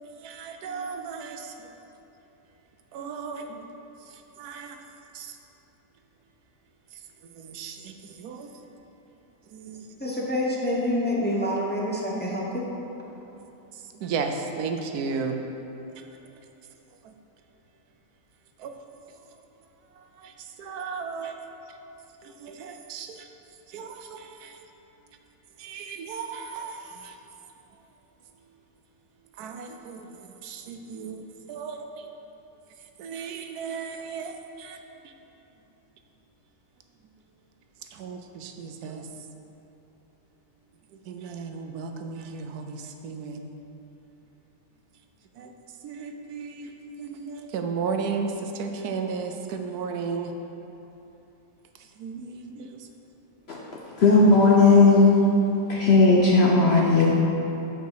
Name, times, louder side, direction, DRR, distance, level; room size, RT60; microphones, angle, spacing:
voice 1, 0.2-1.5 2.9-3.6 4.4-4.8 5.1-5.4 7.4-8.5 9.5-9.9 12.1-12.4 14.0-15.4 17.0-17.1 18.6-18.8 20.0-21.4 22.2-23.3 23.7-24.6 25.6-27.2 29.4-30.1 30.4-32.1 33.0-34.8 35.0-35.1 37.9-39.1 41.1-43.4 45.4-45.5 45.8-46.7 47.0-50.3 52.0-52.8, right 5 dB, 75° right, 5 dB, 1.1 m, -35 dB
voice 2, 10.0-12.6, left 1 dB, 10° left, -5 dB, 0.6 m, -27 dB
voice 3, 53.8-55.2 55.7-57.1, left 3 dB, 60° left, -2 dB, 0.7 m, -17 dB
8.2 x 5.0 x 4.6 m, 3.0 s
omnidirectional pair, 1.7 m